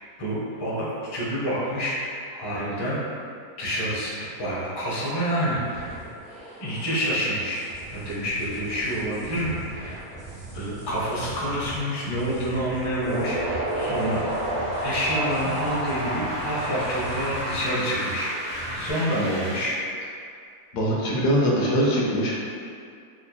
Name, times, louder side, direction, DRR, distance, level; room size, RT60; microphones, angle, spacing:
voice 1, 0.2-3.0 3.6-6.0 6.6-7.6 7.9-10.0 10.5-14.2 14.8-18.3 18.7-19.7, equal, 25° left, -9 dB, 0.6 m, -28 dB
sound 1, 5.6-18.9, right 2 dB, 20° right, 0.7 m, -41 dB
sound 2, 13.0-19.6, right 1 dB, 50° right, 1.4 m, -30 dB
voice 2, 20.7-22.3, equal, 80° left, -5 dB, 1.3 m, -22 dB
4.4 x 2.8 x 2.2 m, 2.4 s
omnidirectional pair, 1.7 m